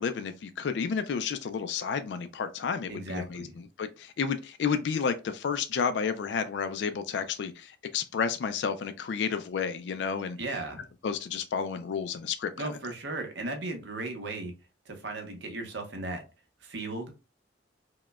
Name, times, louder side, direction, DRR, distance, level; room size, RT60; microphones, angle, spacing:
voice 1, 0.0-3.5 3.8-10.4 11.0-12.7, left 6 dB, 75° left, 0.3 m, -31 dB
voice 2, 2.9-3.6 10.4-10.9 12.6-14.5 14.9-16.2 16.6-17.1, right 2 dB, 85° right, 0.8 m, -36 dB
4.8 x 2.1 x 2.2 m
head